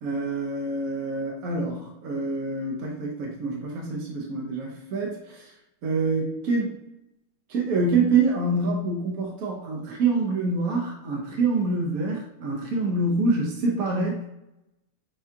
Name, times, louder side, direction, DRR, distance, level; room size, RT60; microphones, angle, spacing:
voice 1, 0.0-5.5 5.8-6.7 7.5-14.2, right 3 dB, 60° right, -1 dB, 0.9 m, -26 dB
7.0 x 2.4 x 2.7 m, 0.90 s
omnidirectional pair, 2.3 m